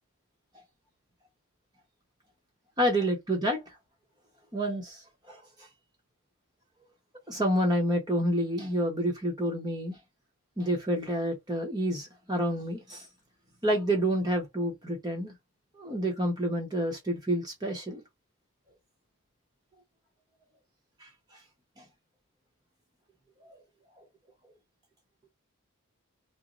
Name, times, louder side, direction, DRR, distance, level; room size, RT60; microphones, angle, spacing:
voice 1, 2.8-3.8 4.5-5.7 7.3-10.0 10.6-13.1 13.6-15.3 15.8-18.0 21.0-21.4 21.8-21.9 23.4-23.6 24.0-24.1, equal, 20° right, 0.8 m, -29 dB
2.9 x 2.0 x 3.8 m
head